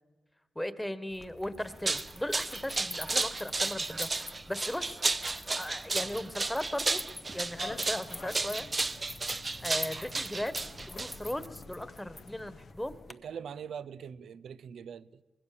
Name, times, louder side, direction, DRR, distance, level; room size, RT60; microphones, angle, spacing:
voice 1, 0.5-4.1 4.5-5.0 5.6-7.0 7.3-8.6 9.6-10.6 10.9-13.0, left 1 dB, 10° left, 1.6 m, -37 dB
sound 1, 1.1-13.1, left 2 dB, 30° left, 0.9 m, -47 dB
sound 2, 1.6-11.5, right 3 dB, 35° right, 0.7 m, -33 dB
sound 3, 7.4-12.7, left 5 dB, 65° left, 1.1 m, -50 dB
voice 2, 13.1-15.2, right 7 dB, 75° right, 0.6 m, -42 dB
24.5 x 20.5 x 6.9 m
supercardioid pair, 50°, 0 cm